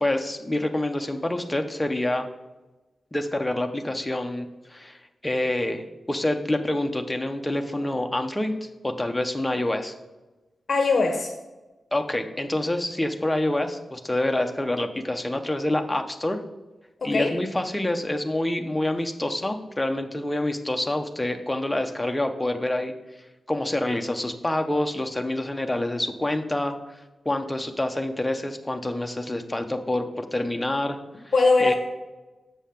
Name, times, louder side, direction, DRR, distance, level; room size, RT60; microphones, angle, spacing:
voice 1, 0.0-2.3 3.1-10.0 11.9-16.4 17.0-22.9 23.5-26.8 27.2-31.0 31.2-31.3 31.6-31.7, left 1 dB, 10° left, 5 dB, 0.6 m, -27 dB
voice 2, 10.7-11.3 17.0-17.3 31.3-31.7, left 3 dB, 45° left, 4 dB, 0.8 m, -20 dB
7.4 x 5.5 x 5.7 m, 1.1 s
wide cardioid pair, 170°, 0 cm